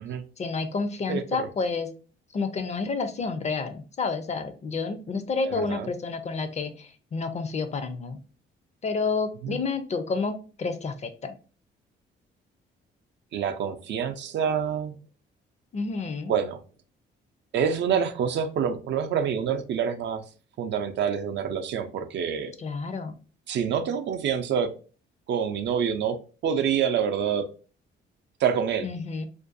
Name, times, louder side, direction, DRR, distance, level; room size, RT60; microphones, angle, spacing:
voice 1, 0.4-1.9 2.3-8.2 8.8-11.3 15.7-16.4 22.6-23.2 28.8-29.3, left 4 dB, 35° left, 9 dB, 0.4 m, -30 dB
voice 2, 1.1-1.5 5.5-5.9 9.4-9.6 13.3-15.0 16.3-16.6 17.5-20.2 20.6-22.5 23.5-24.7 25.3-26.2 26.4-27.5 28.4-28.9, right 7 dB, 65° right, 8 dB, 0.4 m, -27 dB
2.5 x 2.2 x 2.5 m, 0.37 s
cardioid pair, 90°, 20 cm